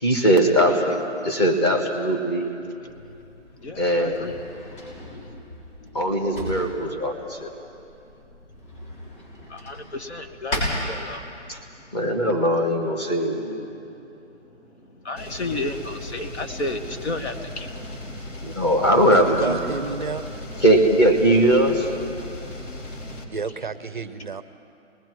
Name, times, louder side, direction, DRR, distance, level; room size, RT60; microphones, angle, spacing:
voice 1, 0.0-2.5 3.8-4.3 5.9-7.5 11.5-11.6 11.9-13.6 18.4-19.6 20.6-21.9, right 1 dB, 20° left, 2 dB, 1.5 m, -20 dB
voice 2, 0.6-1.0 2.8-3.2 3.6-4.4 4.7-5.4 5.8-6.0 9.5-11.9 13.8-18.5 22.3-23.7 24.3-24.4, left 2 dB, 65° left, 8 dB, 1.7 m, -35 dB
Drawer open or close, 2.9-11.6, left 1 dB, 45° left, 6.8 m, -36 dB
sound 1, 15.2-23.2, left 1 dB, 80° left, 3.3 m, -37 dB
voice 3, 19.1-20.2 23.3-24.4, right 5 dB, 40° right, 12 dB, 0.5 m, -30 dB
29.5 x 20.5 x 4.7 m, 2.7 s
hypercardioid pair, 170°, 37 cm